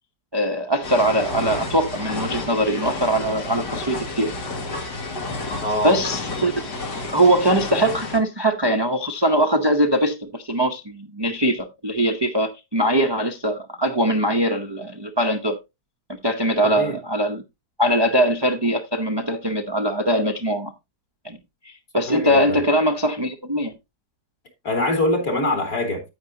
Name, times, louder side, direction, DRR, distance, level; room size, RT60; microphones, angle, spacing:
voice 1, 0.3-4.3 5.3-5.5 5.8-6.5 7.1-15.6 16.2-17.4 17.8-20.7 21.2-21.4 21.6-23.7, right 1 dB, 30° right, 0.5 m, -21 dB
sound 1, 0.8-8.2, left 3 dB, 85° left, 2.5 m, -31 dB
voice 2, 5.6-6.0 16.6-16.9 22.1-22.6 24.6-26.0, left 1 dB, 60° left, 3.3 m, -23 dB
9.7 x 8.8 x 2.7 m
omnidirectional pair, 1.8 m